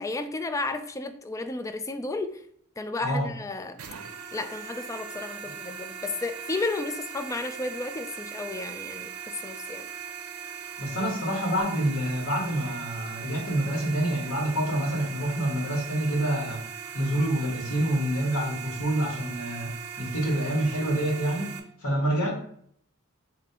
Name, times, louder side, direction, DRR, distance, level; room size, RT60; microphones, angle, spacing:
voice 1, 0.0-2.4 2.8-3.8 4.3-9.9, left 3 dB, 15° left, 9 dB, 0.3 m, -33 dB
sound 1, 3.8-21.6, right 7 dB, 80° right, 0.6 m, -39 dB
voice 2, 10.8-16.6 16.9-19.7 20.0-21.5 21.8-22.3, right 1 dB, 70° left, -2 dB, 1.5 m, -27 dB
7.2 x 2.6 x 2.8 m, 0.65 s
head